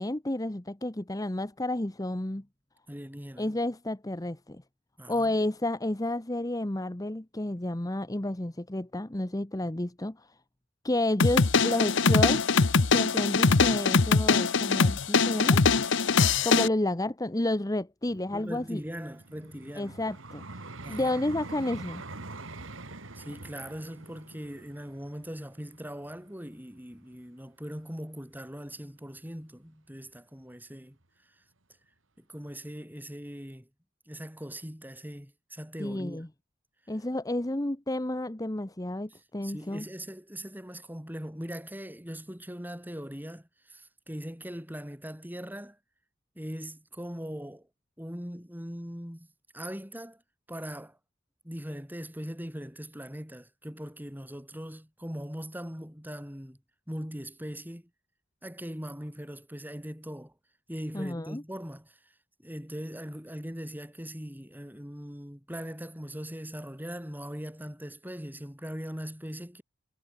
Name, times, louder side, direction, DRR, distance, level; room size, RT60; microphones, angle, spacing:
voice 1, 0.0-2.4 3.4-4.6 5.1-10.3 10.8-12.4 12.9-15.6 16.4-18.8 19.8-20.6 20.9-22.0 35.8-36.3 36.9-39.9 60.9-61.4, left 1 dB, 20° left, 1.0 m, -31 dB
voice 2, 2.9-3.5 5.0-5.3 18.3-19.9 20.8-21.2 23.2-31.0 32.2-33.7 34.1-36.2 39.4-45.8 46.4-47.6 48.0-49.3 49.5-50.2 50.5-51.0 51.4-56.6 56.9-57.8 58.4-60.3 60.7-62.0 62.4-69.6, equal, 10° right, 7.1 m, -40 dB
sound 1, 11.2-16.7, left 4 dB, 60° left, 1.0 m, -22 dB
Vehicle, 18.1-27.2 27.8-28.0, right 2 dB, 70° right, 2.6 m, -45 dB
head